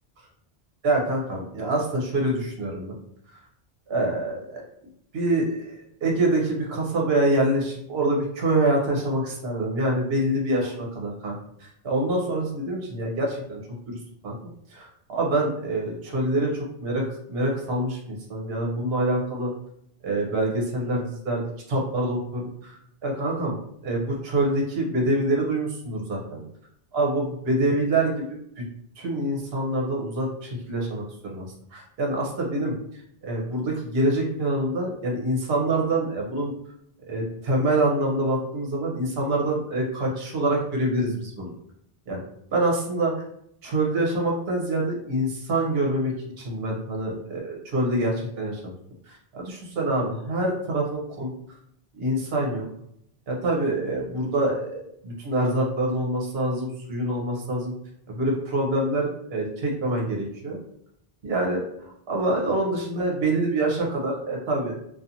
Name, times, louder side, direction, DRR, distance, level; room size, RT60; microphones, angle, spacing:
voice 1, 0.8-3.0 3.9-4.6 5.1-11.3 11.6-13.6 13.9-14.0 14.2-14.3 14.7-19.5 20.0-21.4 21.7-23.6 23.8-26.4 26.9-28.6 29.0-36.5 37.1-41.5 42.1-42.2 42.5-43.1 43.6-48.7 49.0-51.3 52.0-52.7 53.3-57.7 58.1-60.6 61.2-64.8, right 1 dB, 75° right, -1 dB, 1.0 m, -26 dB
2.5 x 2.4 x 2.7 m, 0.73 s
omnidirectional pair, 1.1 m